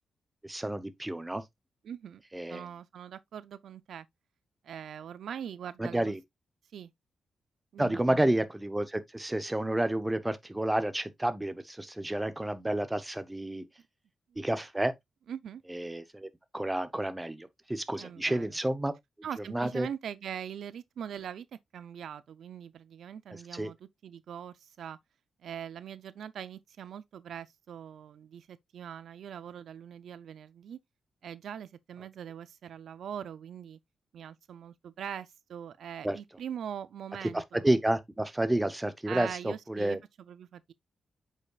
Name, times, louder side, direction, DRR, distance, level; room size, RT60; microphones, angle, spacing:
voice 1, 0.4-1.4 2.3-2.7 5.8-6.2 7.8-13.6 14.4-14.9 15.7-16.3 16.5-18.9 19.5-19.9 23.5-23.7 36.0-36.2 37.3-40.0, right 1 dB, 10° right, 0.8 m, -30 dB
voice 2, 1.8-2.2 2.5-4.1 4.6-6.1 6.7-6.9 7.7-8.2 15.3-15.6 18.0-18.5 19.2-21.5 21.7-25.0 25.4-30.8 31.2-33.8 34.1-37.6 39.1-40.7, right 8 dB, 70° right, 0.4 m, -42 dB
8.3 x 5.5 x 2.3 m
wide cardioid pair, 140°, 0 cm